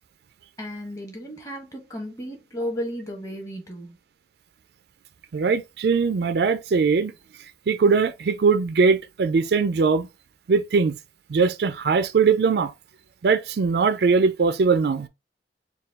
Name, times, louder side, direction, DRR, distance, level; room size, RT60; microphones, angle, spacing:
voice 1, 0.6-4.0, equal, 15° left, 1.3 m, -34 dB
voice 2, 5.3-7.1 7.7-10.1 10.5-11.0 11.3-12.7 13.2-15.1, right 5 dB, 70° right, 0.4 m, -21 dB
4.4 x 2.3 x 3.4 m
head